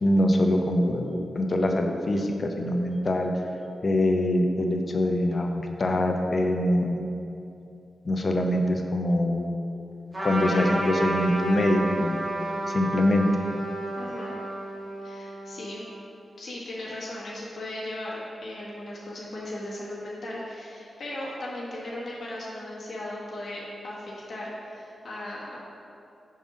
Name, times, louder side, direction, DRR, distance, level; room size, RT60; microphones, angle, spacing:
voice 1, 0.0-3.3 3.8-7.0 8.1-9.5 10.2-12.2 12.7-13.3, left 1 dB, 45° left, 3 dB, 0.6 m, -24 dB
Trumpet, 10.1-16.0, right 1 dB, 35° right, 1.4 m, -31 dB
voice 2, 14.0-14.3 15.0-15.8 16.4-25.6, left 1 dB, 65° left, -6 dB, 1.3 m, -37 dB
5.3 x 3.7 x 5.1 m, 2.7 s
cardioid pair, 90°, 0 cm